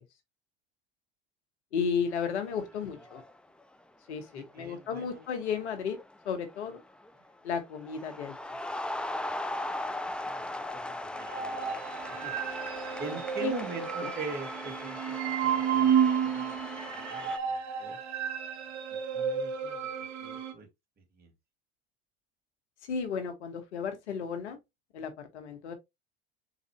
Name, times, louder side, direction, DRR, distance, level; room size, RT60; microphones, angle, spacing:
voice 1, 1.7-3.2 4.1-6.0 6.2-6.8 7.4-8.4 13.4-13.6 14.0-14.1 22.8-24.6 24.9-25.7, left 6 dB, 80° left, 1.2 m, -33 dB
sound 1, 2.1-2.6 2.9-3.4 4.3-4.5 4.9-7.1 7.5-17.4, left 1 dB, 5° left, 0.3 m, -39 dB
voice 2, 4.3-5.2 10.2-11.8 12.1-12.6 13.0-16.0 16.2-16.6 16.9-18.0 19.1-19.8 20.2-20.7 21.0-21.3, right 4 dB, 30° right, 1.9 m, -43 dB
sound 2, 11.2-20.5, right 8 dB, 55° right, 1.1 m, -31 dB
4.0 x 4.0 x 3.0 m
hypercardioid pair, 80°, 34 cm